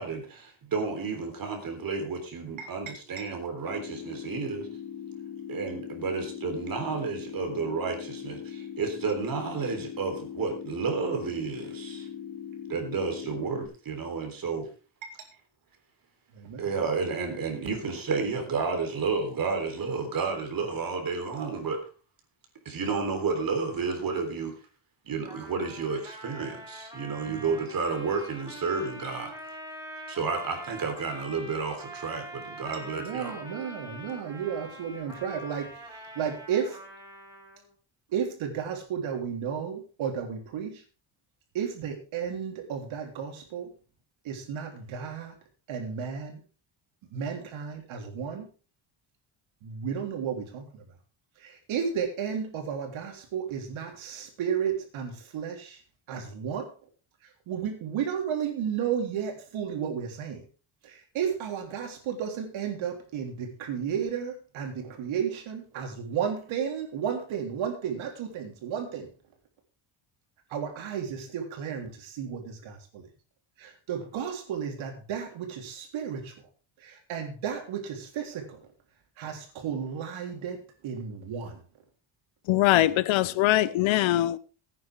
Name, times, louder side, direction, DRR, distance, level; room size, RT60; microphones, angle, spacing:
voice 1, 0.0-4.7 5.5-12.1 12.7-14.7 16.6-21.8 22.7-24.5 25.1-29.6 30.1-33.4, right 4 dB, 45° right, 3.6 m, -31 dB
sound 1, 3.7-13.7, left 9 dB, 50° left, 3.1 m, -40 dB
voice 2, 16.3-16.7 27.3-27.5 33.0-36.8 38.1-40.8 41.5-43.7 44.2-45.3 45.7-46.4 47.1-48.5 49.6-50.8 51.4-55.8 56.1-56.7 57.5-60.4 60.8-69.1 70.5-73.1 73.6-76.3 76.8-78.6 79.2-81.6 82.7-82.9, right 7 dB, 80° right, 3.5 m, -33 dB
Trumpet, 25.3-37.7, right 1 dB, 5° right, 4.6 m, -44 dB
voice 3, 82.5-84.4, left 15 dB, 80° left, 0.8 m, -22 dB
16.0 x 9.5 x 3.6 m
cardioid pair, 130°, 47 cm